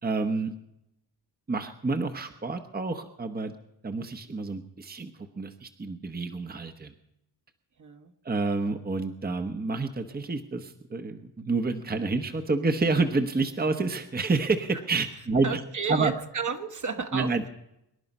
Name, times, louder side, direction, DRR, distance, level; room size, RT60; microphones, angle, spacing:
voice 1, 0.0-0.5 1.5-3.5 3.8-5.1 5.4-6.9 8.2-15.6 15.9-16.1 17.1-17.5, right 3 dB, 25° right, 6 dB, 1.1 m, -28 dB
voice 2, 7.8-8.1 15.4-17.5, right 5 dB, 45° right, 5 dB, 1.5 m, -32 dB
24.5 x 11.0 x 5.4 m, 0.84 s
cardioid pair, 90°, 41 cm